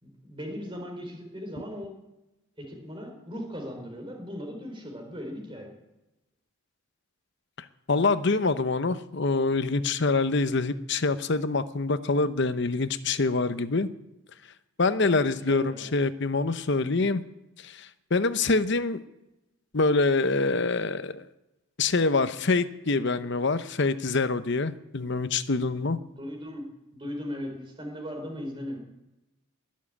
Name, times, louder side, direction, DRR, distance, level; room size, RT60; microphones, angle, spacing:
voice 1, 0.0-1.9 2.6-5.7 15.0-15.8 26.0-26.6 26.9-28.8, equal, 25° right, 2 dB, 4.1 m, -38 dB
voice 2, 7.9-13.9 14.8-17.2 17.6-19.0 19.7-21.2 21.8-26.0, left 3 dB, 55° left, 13 dB, 0.8 m, -25 dB
21.0 x 7.5 x 8.6 m, 0.98 s
head